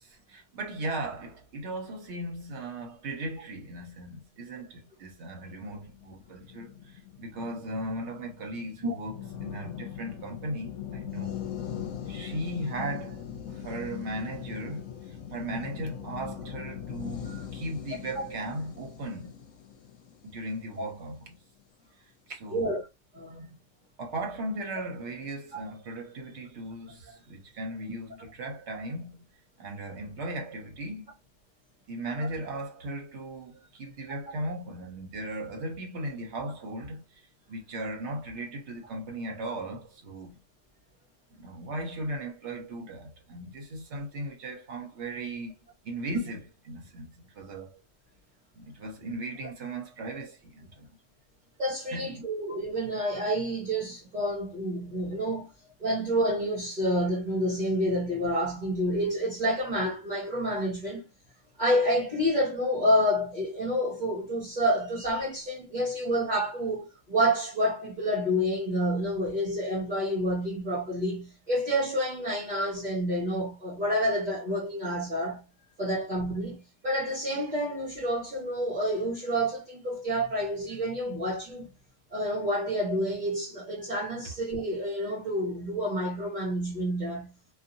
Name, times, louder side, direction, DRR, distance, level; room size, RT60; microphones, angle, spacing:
voice 1, 0.0-11.4 12.1-19.4 20.2-21.4 22.3-22.8 24.0-29.3 29.6-31.1 31.9-37.2 37.5-40.4 41.3-45.5 45.8-46.4 46.7-47.8 48.6-50.9 51.9-52.2, right 1 dB, 65° right, 1.1 m, -37 dB
sound 1, 5.8-21.2, left 9 dB, 75° left, 0.9 m, -41 dB
voice 2, 23.1-23.5 25.5-25.6 51.6-55.5 55.8-61.0 61.6-75.4 75.8-81.7 82.1-87.3, equal, 40° right, 1.1 m, -29 dB
2.7 x 2.5 x 2.6 m
omnidirectional pair, 1.3 m